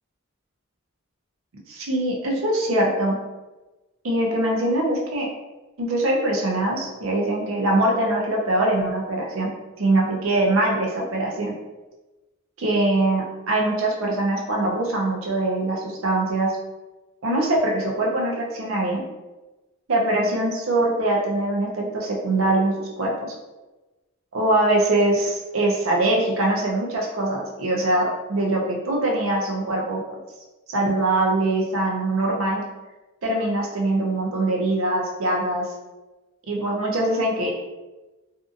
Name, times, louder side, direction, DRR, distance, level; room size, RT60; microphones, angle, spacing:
voice 1, 1.7-3.2 4.0-5.3 5.8-11.5 12.6-16.6 17.2-19.0 19.9-23.3 24.3-30.2 30.7-32.6 33.2-35.7 36.5-37.6, right 1 dB, 85° right, -1 dB, 0.6 m, -23 dB
2.6 x 2.5 x 2.4 m, 1.1 s
head